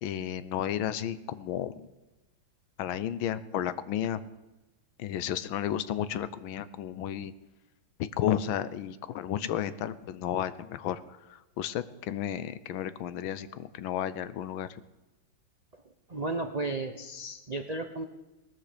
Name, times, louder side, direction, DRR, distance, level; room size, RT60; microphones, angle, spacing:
voice 1, 0.0-1.8 2.8-4.2 5.0-7.3 8.0-11.0 11.3-14.8, left 10 dB, 85° left, 14 dB, 1.6 m, -32 dB
voice 2, 16.1-18.0, right 2 dB, 70° right, 5 dB, 0.3 m, -34 dB
19.0 x 13.0 x 5.1 m, 1.1 s
omnidirectional pair, 2.2 m